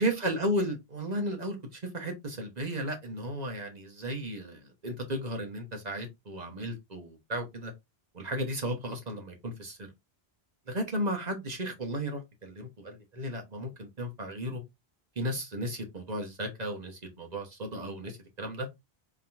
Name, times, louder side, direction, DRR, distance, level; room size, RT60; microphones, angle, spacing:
voice 1, 0.0-7.7 8.1-9.9 10.7-14.6 15.2-18.7, equal, 40° right, 1.1 m, -34 dB
3.6 x 2.9 x 3.4 m
omnidirectional pair, 1.1 m